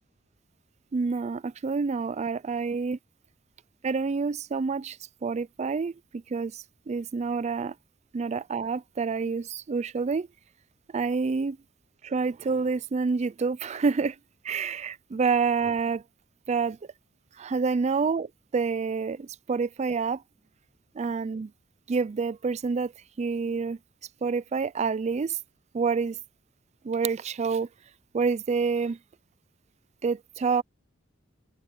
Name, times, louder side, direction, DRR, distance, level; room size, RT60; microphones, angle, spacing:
voice 1, 0.9-3.0 3.8-5.0 5.2-5.9 6.3-7.7 8.1-10.3 10.9-11.6 12.0-14.2 14.4-16.0 16.5-16.8 17.4-20.2 21.0-21.5 21.9-22.9 23.2-23.8 24.2-25.4 25.7-26.2 26.8-27.7 28.1-29.0 30.0-30.6, right 5 dB, 35° right, 0.4 m, -28 dB
head